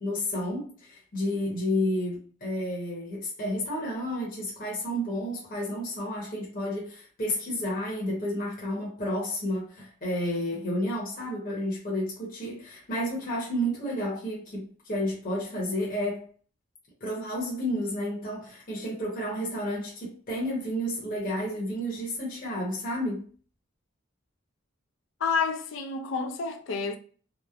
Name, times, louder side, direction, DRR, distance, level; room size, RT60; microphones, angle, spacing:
voice 1, 0.0-16.3 17.0-23.3, equal, 45° left, 0.9 m, -31 dB
voice 2, 25.2-27.0, left 5 dB, 70° left, 0.4 m, -29 dB
2.9 x 2.0 x 2.4 m
head